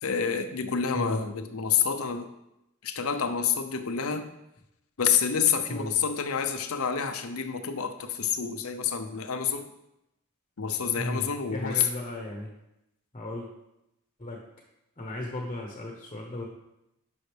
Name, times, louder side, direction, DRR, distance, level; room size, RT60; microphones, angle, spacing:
voice 1, 0.0-2.3 2.8-4.3 5.0-9.7 10.6-11.9, left 7 dB, 85° left, 8 dB, 0.7 m, -28 dB
voice 2, 11.5-12.5 13.1-13.5 14.2-14.4 15.0-16.4, left 1 dB, 30° left, 0 dB, 1.1 m, -35 dB
10.5 x 5.5 x 3.4 m, 0.88 s
head